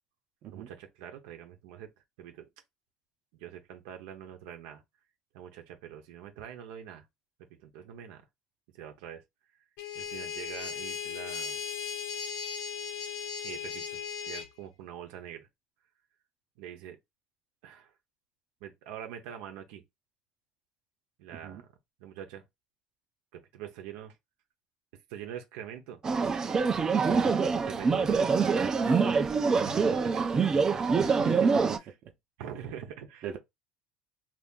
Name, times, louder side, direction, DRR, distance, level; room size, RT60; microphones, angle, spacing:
voice 1, 0.5-1.9 2.2-2.5 3.3-4.8 5.3-7.1 7.6-8.3 8.7-9.2 9.9-11.6 13.4-14.0 14.3-15.5 16.6-17.0 17.6-17.9 18.6-19.8 21.2-21.7 22.0-22.4 23.3-24.2 25.1-26.0 26.9-29.0 29.3-30.1 30.6-30.7 31.0-31.9 32.4-33.3, right 9 dB, 90° right, 0.8 m, -44 dB
sound 1, 9.8-14.5, left 7 dB, 75° left, 0.9 m, -37 dB
voice 2, 21.3-21.6 27.3-27.4 28.8-29.1 29.5-29.6 30.0-30.4 30.7-31.6 33.2-33.4, right 8 dB, 55° right, 0.7 m, -41 dB
sound 2, 26.0-31.8, right 5 dB, 25° right, 0.5 m, -25 dB
2.7 x 2.5 x 3.6 m
cardioid pair, 125°, 3 cm